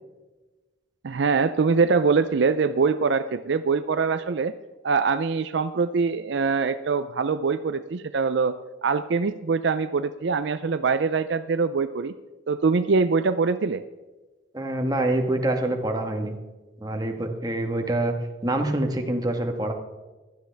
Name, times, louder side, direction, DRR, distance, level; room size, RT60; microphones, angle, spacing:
voice 1, 1.0-4.5 4.8-8.5 8.8-12.1 12.5-13.8, right 4 dB, 60° right, 11 dB, 0.4 m, -23 dB
voice 2, 14.5-16.4 16.8-18.1 18.4-19.7, right 1 dB, 20° right, 4 dB, 1.4 m, -26 dB
15.5 x 12.5 x 3.4 m, 1.2 s
head